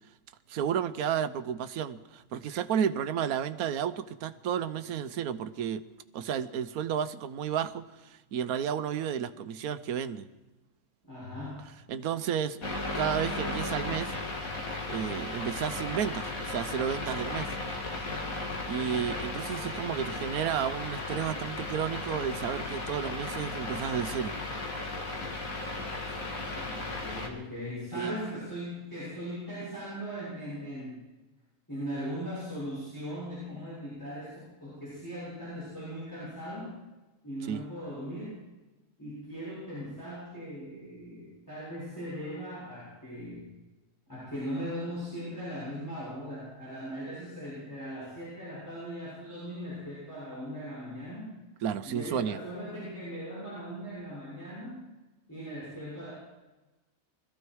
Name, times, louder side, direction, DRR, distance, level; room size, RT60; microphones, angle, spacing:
voice 1, 0.5-5.8 6.1-10.3 11.9-12.6 12.9-14.1 14.9-17.5 18.7-24.4 27.9-28.2 37.4-37.6 51.6-52.4, right 8 dB, 85° right, 12 dB, 1.2 m, -32 dB
voice 2, 11.1-11.7 26.6-31.0 31.7-36.7 37.2-38.4 39.0-43.5 44.1-51.3 51.9-54.8 55.3-56.1, equal, 10° left, -9 dB, 6.9 m, -39 dB
sound 1, 12.6-27.3, left 2 dB, 70° left, 2.5 m, -35 dB
21.0 x 14.0 x 4.7 m, 1.1 s
omnidirectional pair, 1.5 m